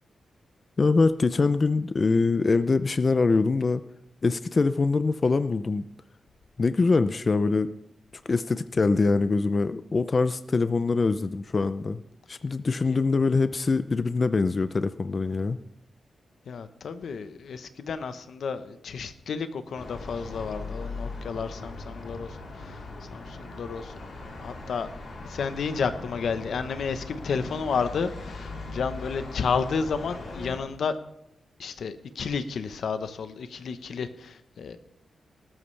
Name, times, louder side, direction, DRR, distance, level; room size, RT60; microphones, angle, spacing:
voice 1, 0.8-3.8 4.2-5.8 6.6-7.7 8.3-12.0 12.3-15.6, left 3 dB, 35° left, 12 dB, 0.5 m, -24 dB
voice 2, 16.5-22.3 22.6-22.8 23.1-24.9 25.3-31.0 31.6-34.8, left 5 dB, 70° left, 10 dB, 1.0 m, -31 dB
sound 1, 19.7-30.6, left 3 dB, 55° left, 3.6 m, -39 dB
19.0 x 12.5 x 3.3 m, 0.84 s
wide cardioid pair, 150°, 0 cm